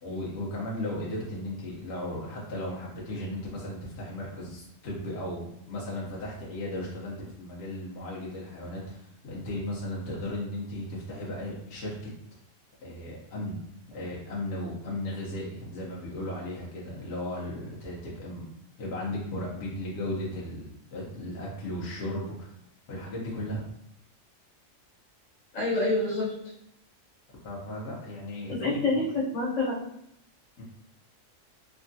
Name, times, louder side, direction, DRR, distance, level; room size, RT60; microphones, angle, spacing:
voice 1, 0.0-12.1 12.8-13.6 13.9-18.5 18.8-22.5 22.9-23.6 27.4-29.0 30.6-30.7, left 1 dB, 60° left, -5 dB, 0.9 m, -36 dB
voice 2, 25.5-26.3 28.5-29.8, left 2 dB, 75° left, -5 dB, 1.4 m, -27 dB
3.4 x 2.2 x 2.6 m, 0.76 s
omnidirectional pair, 1.3 m